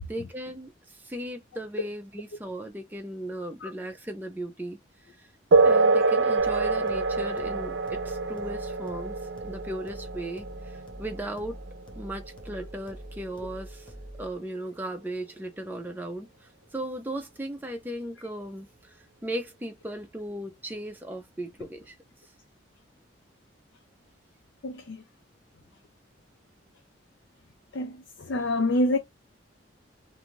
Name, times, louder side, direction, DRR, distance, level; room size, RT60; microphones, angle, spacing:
voice 1, 0.1-5.3 5.6-9.2 9.4-11.6 12.0-13.9 14.2-21.9, right 1 dB, 10° right, 0.4 m, -37 dB
sound 1, 5.5-13.5, right 3 dB, 70° right, 0.5 m, -26 dB
sound 2, 6.4-14.4, equal, 25° left, 0.7 m, -45 dB
voice 2, 24.6-25.0 27.7-29.0, left 1 dB, 70° left, 0.4 m, -27 dB
2.6 x 2.3 x 2.9 m
head